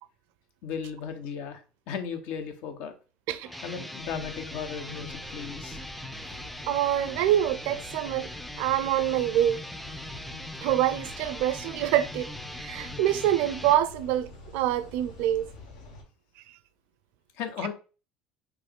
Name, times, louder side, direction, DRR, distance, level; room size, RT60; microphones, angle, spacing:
voice 1, 0.6-2.9 3.6-5.8 17.4-17.7, left 7 dB, 70° left, 0.8 m, -36 dB
sound 1, 3.4-13.8, left 1 dB, ahead, 0.4 m, -40 dB
sound 2, 4.0-16.0, left 2 dB, 85° left, 1.3 m, -47 dB
voice 2, 6.7-8.3 8.6-9.6 10.6-12.3 12.6-15.4, right 12 dB, 75° right, 0.4 m, -25 dB
3.0 x 2.9 x 3.6 m
supercardioid pair, 90°, 3 cm